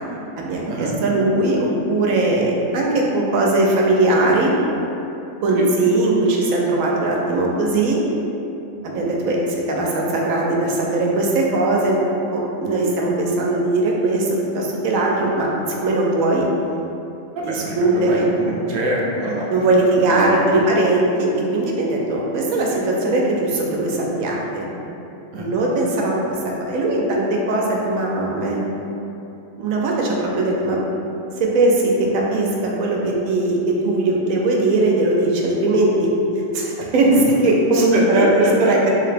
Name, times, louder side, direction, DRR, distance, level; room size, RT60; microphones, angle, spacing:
voice 1, 0.4-4.5 5.4-8.0 8.8-12.0 12.3-15.5 15.8-16.5 17.4-18.2 19.5-24.7 25.4-28.6 29.6-30.8 31.4-36.1 36.5-37.1 37.4-38.9, right 2 dB, 75° right, -2 dB, 1.0 m, -19 dB
voice 2, 17.3-19.6 20.1-20.6 25.3-25.5 37.1-37.3 37.7-38.8, right 1 dB, 60° right, -3 dB, 0.6 m, -24 dB
3.3 x 2.8 x 3.3 m, 2.9 s
omnidirectional pair, 1.4 m